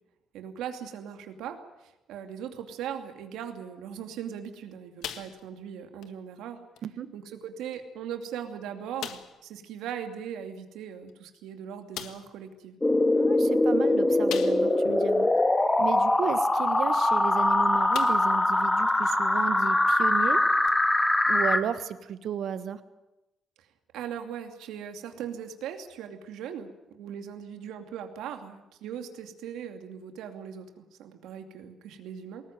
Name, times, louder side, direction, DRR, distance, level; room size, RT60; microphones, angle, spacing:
voice 1, 0.3-6.6 7.1-12.8 23.9-32.5, right 8 dB, 90° right, 6 dB, 2.6 m, -39 dB
sound 1, 5.0-5.7 6.0-6.2 6.8-6.9 7.7-7.8 8.2-8.3 9.0-9.4 11.1-11.2 11.9-12.3 14.3-14.9 15.4-15.5 17.3-17.5 17.9-18.4 18.9-19.0 20.6-20.7, left 10 dB, 80° left, 1.6 m, -39 dB
sound 2, 12.8-21.6, left 2 dB, 15° left, 1.8 m, -23 dB
voice 2, 13.1-15.3 15.8-20.4 21.3-22.8, right 8 dB, 65° right, 12 dB, 1.4 m, -33 dB
20.5 x 19.0 x 9.3 m, 0.97 s
cardioid pair, 90°, 0 cm